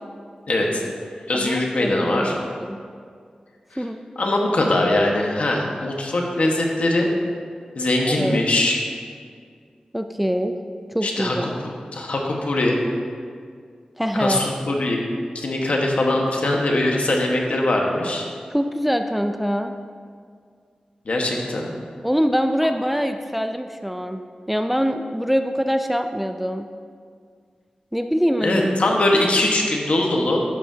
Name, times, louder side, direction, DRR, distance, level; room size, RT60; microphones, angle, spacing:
voice 1, 0.5-0.8 1.3-2.4 4.2-7.1 7.7-8.8 11.0-11.5 11.9-12.8 14.2-15.0 15.3-18.3 21.0-21.7 28.4-30.4, left 1 dB, 65° left, 0 dB, 1.5 m, -21 dB
voice 2, 1.3-2.8 3.8-4.0 8.1-8.4 9.9-10.6 10.9-11.4 14.0-14.4 18.5-19.7 22.0-24.2 24.5-26.7 27.9-28.7, equal, 5° right, 6 dB, 0.4 m, -24 dB
11.5 x 9.7 x 2.8 m, 2.1 s
wide cardioid pair, 80°, 2 cm